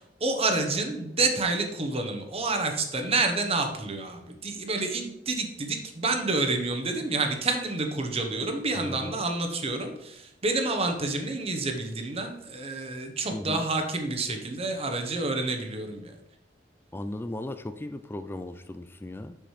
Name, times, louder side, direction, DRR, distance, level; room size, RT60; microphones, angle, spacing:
voice 1, 0.0-16.1, right 3 dB, 35° right, 5 dB, 0.9 m, -29 dB
voice 2, 8.7-9.1 13.3-13.6 16.9-19.4, left 1 dB, 15° left, 10 dB, 0.3 m, -36 dB
6.5 x 5.9 x 3.2 m, 0.84 s
head